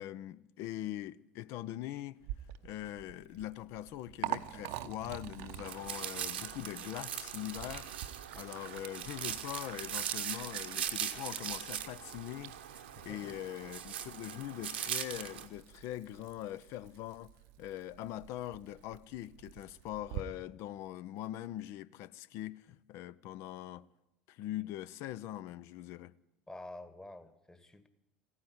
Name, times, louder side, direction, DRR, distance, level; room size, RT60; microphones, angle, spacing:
voice 1, 0.0-2.2 2.6-7.9 8.3-17.3 17.6-23.8 24.3-26.1, left 13 dB, 55° left, 0.5 m, -42 dB
Liquid, 2.2-20.2, right 14 dB, 60° right, 0.7 m, -47 dB
sound 1, 5.7-15.5, right 9 dB, 80° right, 1.0 m, -40 dB
voice 2, 26.5-27.9, left 1 dB, 10° left, 1.4 m, -49 dB
15.5 x 9.6 x 9.6 m
figure-of-eight pair, 70°, 5 cm